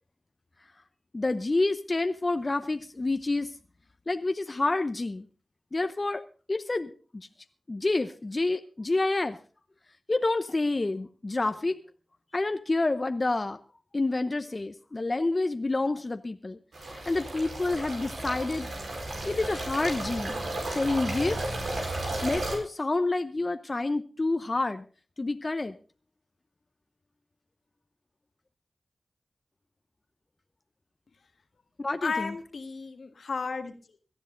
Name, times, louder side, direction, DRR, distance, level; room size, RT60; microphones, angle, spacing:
voice 1, 1.1-3.5 4.1-5.2 5.7-6.2 6.5-7.3 7.7-9.4 10.1-11.8 12.3-13.6 13.9-18.7 19.2-20.4 20.6-21.4 22.2-24.8 25.2-25.7 31.8-32.3, left 2 dB, 40° left, 9 dB, 0.8 m, -28 dB
sound 1, 16.7-22.6, right 1 dB, 90° right, 4.8 m, -33 dB
voice 2, 32.0-34.0, left 4 dB, 80° left, 7 dB, 1.6 m, -34 dB
18.0 x 12.5 x 3.9 m, 0.37 s
cardioid pair, 55°, 0 cm